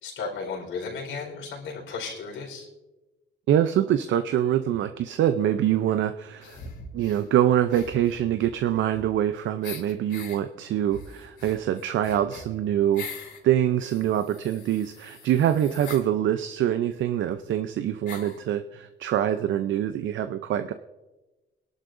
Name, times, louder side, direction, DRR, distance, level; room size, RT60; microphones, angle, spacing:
voice 1, 0.0-2.7, left 4 dB, 85° left, -1 dB, 4.4 m, -34 dB
voice 2, 3.5-6.6 6.9-13.1 13.4-20.7, right 11 dB, 70° right, 10 dB, 0.6 m, -24 dB
sound 1, 6.4-7.3 7.7-9.3 9.6-10.4 10.9-13.4 13.8-16.1 17.0-17.1 17.3-17.4 18.1-18.4, left 4 dB, 65° left, 3.3 m, -43 dB
22.0 x 11.5 x 2.6 m, 1.1 s
cardioid pair, 90°, 20 cm